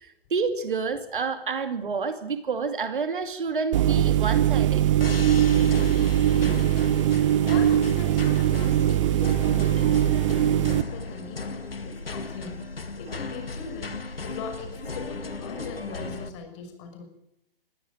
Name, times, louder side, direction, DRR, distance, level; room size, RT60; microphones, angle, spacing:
voice 1, 0.0-4.8, right 5 dB, 60° right, 9 dB, 2.6 m, -28 dB
sound 1, 3.7-10.8, right 11 dB, 35° right, 0.9 m, -21 dB
sound 2, 5.0-16.3, left 3 dB, 75° left, 2.1 m, -36 dB
voice 2, 6.4-10.0 10.4-12.6 13.0-17.0, left 4 dB, 30° left, 6 dB, 5.9 m, -40 dB
21.5 x 16.5 x 9.0 m, 0.84 s
figure-of-eight pair, 125°, 29 cm